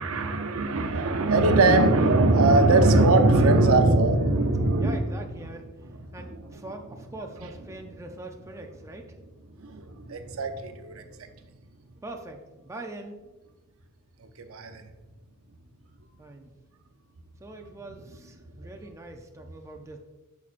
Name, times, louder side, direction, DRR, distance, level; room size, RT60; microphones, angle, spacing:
voice 1, 0.0-5.0 9.6-11.0 14.5-14.8, right 2 dB, 65° right, 6 dB, 0.7 m, -21 dB
voice 2, 4.8-5.7 6.1-9.1 12.0-13.2 16.2-16.5 17.4-20.0, right 2 dB, 15° right, 3 dB, 0.4 m, -42 dB
8.3 x 5.8 x 2.5 m, 1.1 s
head